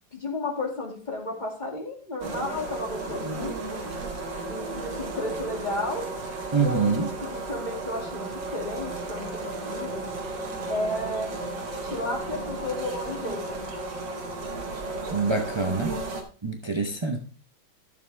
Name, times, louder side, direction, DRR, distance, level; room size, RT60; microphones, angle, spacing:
voice 1, 0.1-3.8 4.5-6.1 6.5-10.1 10.7-11.4 11.8-13.7, left 2 dB, 25° left, 2.4 m, -33 dB
sound 1, 2.2-16.2, right 2 dB, 70° right, 2.2 m, -34 dB
voice 2, 6.5-7.0 15.1-15.9 16.4-17.2, right 4 dB, 50° right, 0.3 m, -25 dB
13.0 x 7.1 x 3.3 m
omnidirectional pair, 2.1 m